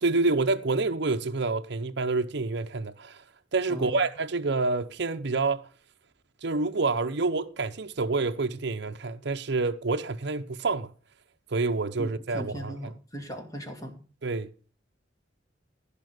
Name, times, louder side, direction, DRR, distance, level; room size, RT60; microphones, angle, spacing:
voice 1, 0.0-3.2 3.5-5.7 6.4-10.9 11.5-12.9 14.2-14.5, right 3 dB, 65° right, 0.8 m, -28 dB
voice 2, 12.0-14.0, equal, 20° left, 2.5 m, -39 dB
15.0 x 5.5 x 6.6 m
head